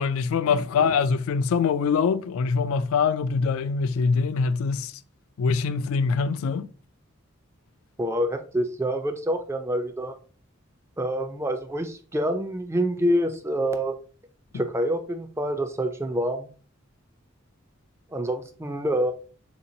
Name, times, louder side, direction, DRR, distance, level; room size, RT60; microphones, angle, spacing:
voice 1, 0.0-4.9 5.4-6.7, left 5 dB, 75° left, 0.3 m, -24 dB
voice 2, 8.0-10.1 11.0-14.0 14.5-16.5 18.1-19.1, equal, 15° right, 0.3 m, -26 dB
3.6 x 2.9 x 2.6 m
head